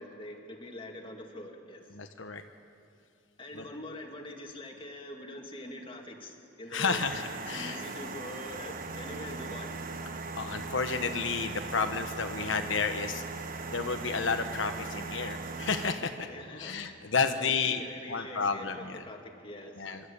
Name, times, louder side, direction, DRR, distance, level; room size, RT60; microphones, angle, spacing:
voice 1, 0.0-2.0 3.4-7.0 7.5-9.8 16.3-20.0, left 1 dB, 30° left, 2 dB, 2.2 m, -44 dB
voice 2, 1.9-2.4 3.5-3.6 6.7-7.8 10.4-13.2 13.7-16.3 16.6-17.8 18.1-19.0 19.8-20.0, left 5 dB, 85° left, 6 dB, 1.2 m, -31 dB
sound 1, 6.9-15.9, right 3 dB, 50° right, 1.3 m, -39 dB
27.0 x 13.0 x 8.5 m, 2.4 s
head